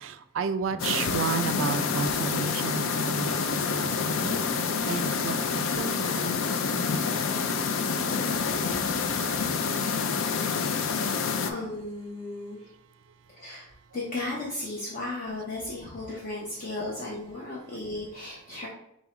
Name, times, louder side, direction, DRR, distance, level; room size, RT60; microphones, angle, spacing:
voice 1, 0.0-7.0, right 6 dB, 65° right, 11 dB, 0.3 m, -33 dB
Drum, 0.7-11.7, equal, 10° left, 1.5 m, -46 dB
sound 1, 0.8-11.5, left 5 dB, 75° left, 0.4 m, -28 dB
voice 2, 8.6-9.9 10.5-10.6 11.4-12.7 13.3-18.7, left 2 dB, 45° left, -4 dB, 0.8 m, -36 dB
4.2 x 3.5 x 3.0 m, 0.77 s
head